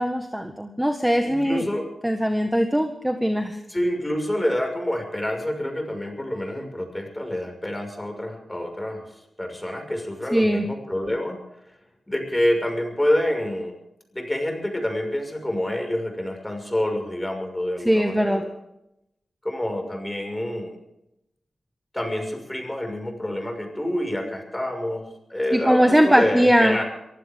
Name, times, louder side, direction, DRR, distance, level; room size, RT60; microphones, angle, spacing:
voice 1, 0.0-1.6 2.0-3.6 10.3-10.6 17.8-18.4 25.5-26.8, equal, 5° right, 5 dB, 1.6 m, -20 dB
voice 2, 1.2-1.9 3.7-9.1 9.4-11.4 12.1-13.7 14.1-18.5 19.4-20.8 21.9-26.8, left 1 dB, 15° left, 4 dB, 6.1 m, -27 dB
23.5 x 16.0 x 3.8 m, 0.83 s
cardioid pair, 65°, 0 cm